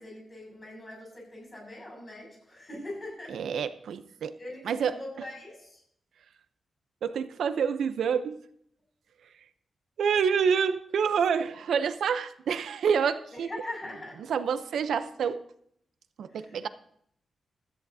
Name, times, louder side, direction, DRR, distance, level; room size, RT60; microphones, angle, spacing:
voice 1, 0.0-3.4 4.4-5.8 13.3-14.2 16.3-16.7, left 1 dB, 25° left, -1 dB, 6.5 m, -42 dB
voice 2, 3.3-4.4 4.7-4.9 7.0-8.4 10.0-13.5 14.3-15.4 16.2-16.7, right 6 dB, 90° right, 11 dB, 0.7 m, -27 dB
16.5 x 13.5 x 2.8 m, 0.68 s
wide cardioid pair, 170°, 0 cm